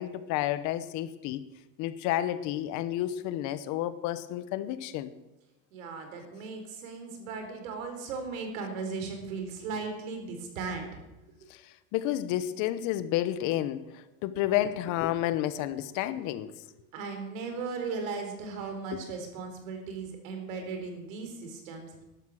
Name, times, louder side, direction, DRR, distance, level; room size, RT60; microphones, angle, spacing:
voice 1, 0.0-1.4 1.8-5.1 11.5-16.5 18.9-19.0, left 13 dB, 50° left, 14 dB, 1.0 m, -31 dB
voice 2, 5.7-11.0 11.4-11.5 16.9-22.0, right 4 dB, 85° right, 5 dB, 4.2 m, -37 dB
13.5 x 12.0 x 6.4 m, 0.97 s
supercardioid pair, 145°, 39 cm